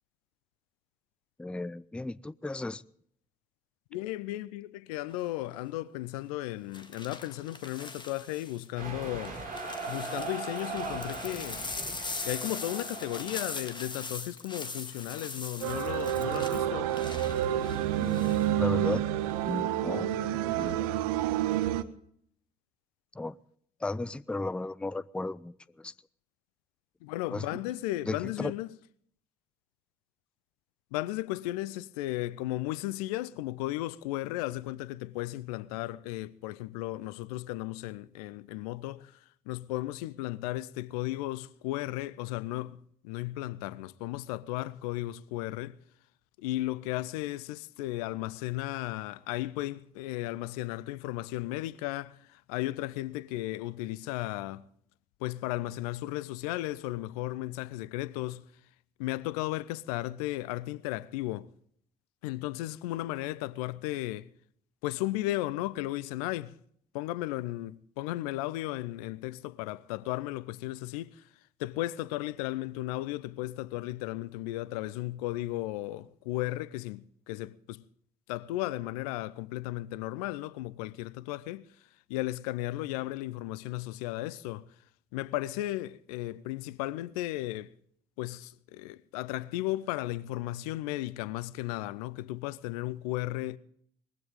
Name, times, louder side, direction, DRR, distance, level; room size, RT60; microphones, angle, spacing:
voice 1, 1.4-2.8 17.9-19.0 19.4-20.1 20.6-20.9 23.2-23.3 23.8-25.9 27.3-27.5 28.1-28.5, left 2 dB, 5° left, 0.5 m, -35 dB
voice 2, 3.9-9.4 9.9-11.6 12.2-16.9 27.0-28.7 30.9-39.1 39.5-45.8 46.4-54.7 55.2-58.4 59.0-61.5 62.2-64.3 64.8-66.5 66.9-71.2 71.6-77.8 78.3-81.7 82.1-84.7 85.1-87.7 88.2-93.6, left 16 dB, 65° left, 0.6 m, -35 dB
sound 1, 5.1-5.4 6.7-8.7 9.2-18.5 18.8-19.3, left 3 dB, 20° left, 1.8 m, -41 dB
sound 2, 8.8-13.9, right 3 dB, 45° right, 5.5 m, -39 dB
sound 3, 15.6-21.8, right 12 dB, 70° right, 0.8 m, -29 dB
20.0 x 15.5 x 3.7 m
figure-of-eight pair, 50°, 20 cm